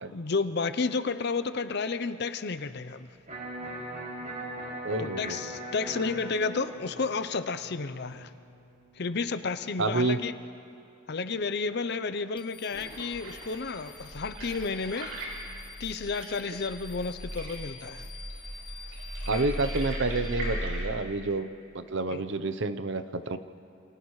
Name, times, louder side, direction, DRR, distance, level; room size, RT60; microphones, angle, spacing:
voice 1, 0.1-3.2 5.0-8.3 9.0-10.3 11.1-15.1 15.8-18.1 22.1-22.2, left 4 dB, 50° left, 11 dB, 0.6 m, -31 dB
Electric guitar, 3.3-9.3, right 1 dB, 40° right, 6.2 m, -41 dB
voice 2, 4.8-5.5 9.8-10.2 19.3-21.5 21.7-23.4, right 2 dB, 60° right, 11 dB, 0.8 m, -29 dB
sound 1, 12.4-20.8, left 5 dB, 25° left, 1.3 m, -49 dB
sound 2, 12.7-20.9, right 1 dB, 80° right, 7.0 m, -38 dB
29.0 x 28.0 x 3.2 m, 2.6 s
head